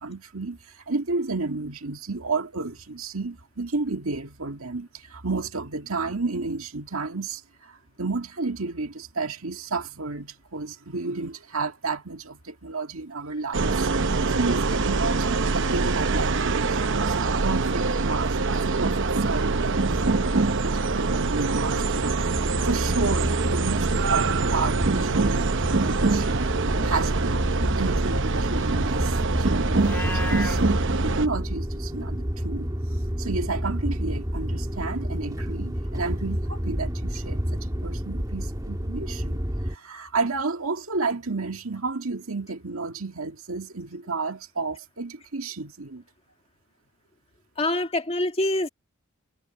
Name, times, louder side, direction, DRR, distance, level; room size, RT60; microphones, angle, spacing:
voice 1, 0.0-22.2 22.6-26.5 26.8-27.5 27.7-30.6 30.9-32.7 33.2-46.0, right 3 dB, 75° right, 2.1 m, -32 dB
sound 1, 13.5-31.3, right 3 dB, 60° right, 0.9 m, -24 dB
sound 2, 19.9-39.8, equal, 15° right, 2.1 m, -30 dB
Livestock farm animals working animals, 29.7-30.6, left 2 dB, 10° left, 2.6 m, -32 dB
voice 2, 47.6-48.7, left 1 dB, 30° left, 2.0 m, -25 dB
head